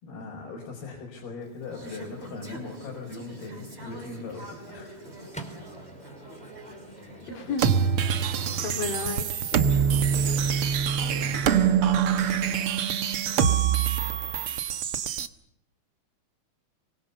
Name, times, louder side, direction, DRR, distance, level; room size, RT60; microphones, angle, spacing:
voice 1, 0.0-5.0 9.8-10.4 11.0-11.8, left 3 dB, 85° left, 0 dB, 6.8 m, -40 dB
Conversation / Chatter, 1.4-10.3, equal, 15° right, 5.7 m, -45 dB
Microwave oven, 4.9-10.9, right 1 dB, ahead, 2.7 m, -48 dB
voice 2, 7.3-7.7 8.3-9.2 10.5-10.7, left 5 dB, 65° left, 6 dB, 4.8 m, -33 dB
sound 1, 7.6-15.3, right 8 dB, 85° right, 1.2 m, -24 dB
24.5 x 24.0 x 6.9 m, 0.74 s
omnidirectional pair, 4.4 m